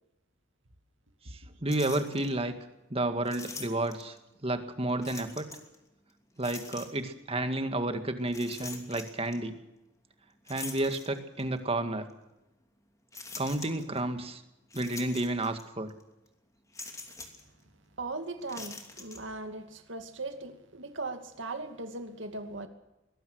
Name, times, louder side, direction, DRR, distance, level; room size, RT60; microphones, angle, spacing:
voice 1, 1.3-2.5 2.9-4.2 4.4-5.5 6.4-9.5 10.5-12.0 13.4-14.4 14.7-15.9, right 2 dB, 30° right, 8 dB, 2.0 m, -31 dB
sound 1, 1.7-2.3 3.3-4.2 5.0-5.8 6.4-7.1 8.3-9.4 10.5-11.5 12.1-12.2 13.1-14.0 14.7-15.6 15.9-16.0 16.7-17.5 18.4-19.2, left 3 dB, 15° left, 2.9 m, -44 dB
voice 2, 18.0-22.7, right 2 dB, 65° right, 6 dB, 2.5 m, -39 dB
23.0 x 19.5 x 6.4 m, 0.95 s
head